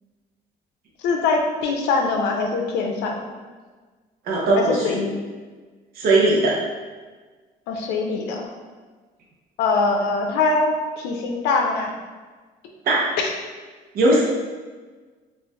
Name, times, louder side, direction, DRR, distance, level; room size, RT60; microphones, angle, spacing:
voice 1, 1.0-3.2 4.6-5.2 7.7-8.5 9.6-11.9 13.2-13.3, left 3 dB, 90° left, 2 dB, 0.5 m, -23 dB
voice 2, 4.3-4.9 6.0-6.6 12.9-13.1 13.9-14.2, right 2 dB, 60° right, -4 dB, 0.8 m, -18 dB
4.3 x 2.4 x 2.3 m, 1.4 s
cardioid pair, 110°, 17 cm